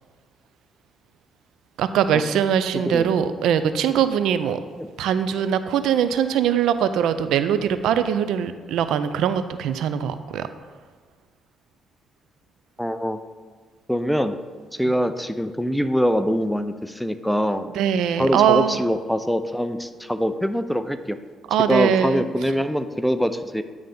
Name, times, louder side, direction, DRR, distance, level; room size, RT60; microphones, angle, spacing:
voice 1, 1.8-4.6 5.0-10.4 17.8-18.8 21.5-22.2, right 9 dB, 85° right, 11 dB, 0.4 m, -21 dB
voice 2, 12.8-13.2 13.9-14.4 14.7-17.7 18.2-21.2 21.7-23.6, equal, ahead, 10 dB, 0.4 m, -23 dB
9.3 x 3.3 x 5.2 m, 1.5 s
cardioid pair, 90°, 0 cm